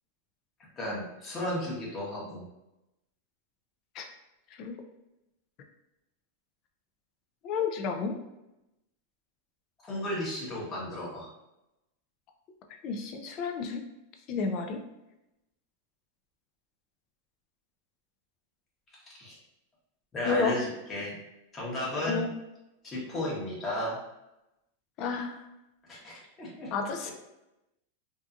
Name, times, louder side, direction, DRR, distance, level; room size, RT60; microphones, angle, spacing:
voice 1, 0.8-2.4 9.8-11.3 19.1-19.4 20.1-21.2 21.5-22.2 22.8-24.0 25.9-26.7 27.0-27.1, left 1 dB, 20° left, -6 dB, 1.0 m, -34 dB
voice 2, 7.4-8.2 12.8-13.8 14.3-14.8 20.3-20.6 22.0-22.3 25.0-25.4 26.7-27.1, left 5 dB, 40° left, 4 dB, 0.4 m, -30 dB
2.7 x 2.4 x 2.4 m, 0.91 s
supercardioid pair, 130°, 0 cm